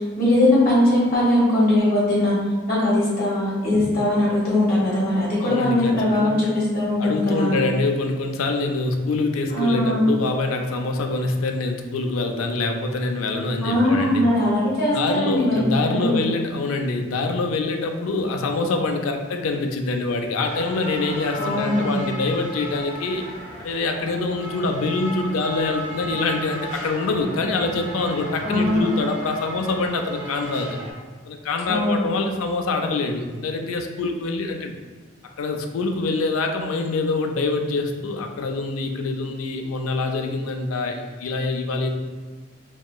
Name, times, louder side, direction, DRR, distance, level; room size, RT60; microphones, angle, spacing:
voice 1, 0.2-2.4 2.7-7.5 9.5-10.0 13.6-16.2 21.3-22.0 28.4-28.8 31.7-32.0, left 1 dB, 45° left, -7 dB, 1.2 m, -20 dB
voice 2, 5.4-6.3 7.0-14.2 14.9-23.2 23.6-30.8 31.3-34.8 35.2-41.9, left 3 dB, 85° left, 4 dB, 0.4 m, -25 dB
sound 1, 20.4-30.9, right 1 dB, 85° right, 0.8 m, -35 dB
3.0 x 2.8 x 2.2 m, 1.5 s
head